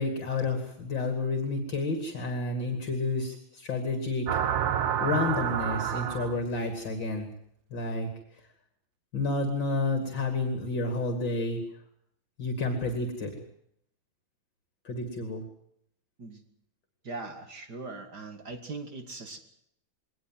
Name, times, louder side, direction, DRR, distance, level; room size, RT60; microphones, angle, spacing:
voice 1, 0.0-4.4 5.0-7.3 7.7-8.1 9.1-11.6 12.4-13.3 14.8-15.4, left 3 dB, 60° left, 6 dB, 3.2 m, -30 dB
sound 1, 4.3-6.6, right 9 dB, 65° right, 1.7 m, -29 dB
voice 2, 17.0-19.4, right 3 dB, 50° right, 7 dB, 2.5 m, -40 dB
21.5 x 19.0 x 7.7 m, 0.72 s
omnidirectional pair, 2.3 m